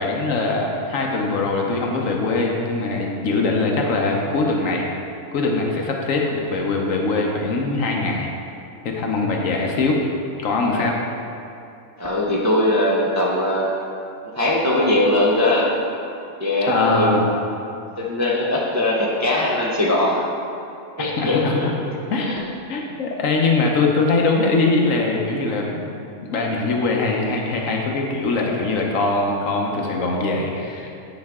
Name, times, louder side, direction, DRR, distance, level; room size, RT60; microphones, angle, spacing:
voice 1, 0.0-4.9 5.3-8.3 8.8-10.0 10.4-11.0 16.7-17.3 21.0-21.7 22.1-22.4 22.7-25.9 26.2-30.9, left 3 dB, 70° left, 0 dB, 1.2 m, -22 dB
voice 2, 12.0-13.7 14.2-15.7 16.4-17.3 18.0-20.2 21.0-21.7 22.2-22.4, left 1 dB, 20° right, -4 dB, 0.5 m, -20 dB
9.4 x 5.2 x 3.6 m, 2.6 s
omnidirectional pair, 1.5 m